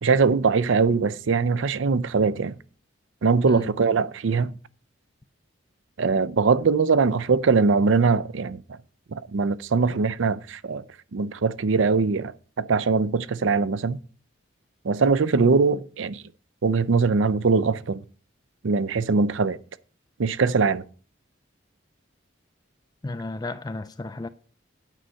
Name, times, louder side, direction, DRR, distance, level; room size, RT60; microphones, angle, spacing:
voice 1, 0.0-2.6 3.2-4.5 6.0-8.6 9.1-10.8 11.1-12.3 12.6-14.0 14.8-16.2 16.6-18.0 18.6-19.6 20.2-20.8, right 4 dB, 75° right, 0.5 m, -22 dB
voice 2, 23.0-24.3, left 2 dB, 20° left, 0.3 m, -33 dB
9.1 x 5.6 x 6.3 m
head